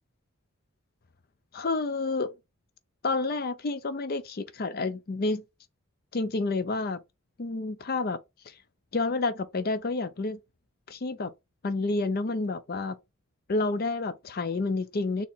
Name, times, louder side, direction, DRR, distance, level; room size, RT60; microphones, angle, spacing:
voice 1, 1.5-2.3 3.0-5.4 6.1-7.0 7.4-8.2 8.5-8.6 8.9-10.4 10.9-11.3 11.6-13.0 13.5-15.3, left 3 dB, 45° left, 0.5 m, -29 dB
4.4 x 2.9 x 3.5 m
head